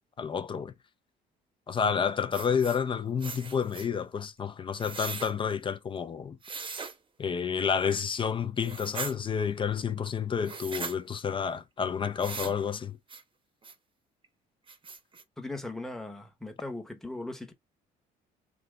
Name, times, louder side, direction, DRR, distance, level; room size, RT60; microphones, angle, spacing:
voice 1, 0.2-0.7 1.7-6.4 7.2-13.0, left 7 dB, 30° left, 0.5 m, -30 dB
sound 1, 2.3-2.8 3.2-3.9 4.8-5.3 6.4-6.9 8.6-9.1 10.4-11.0 12.2-12.6 13.1-13.2 13.6-13.7 14.2-14.3 14.7-15.2, right 4 dB, 30° right, 0.9 m, -39 dB
voice 2, 15.4-17.5, left 2 dB, 5° left, 0.9 m, -38 dB
3.4 x 2.8 x 3.7 m
cardioid pair, 110°, 17 cm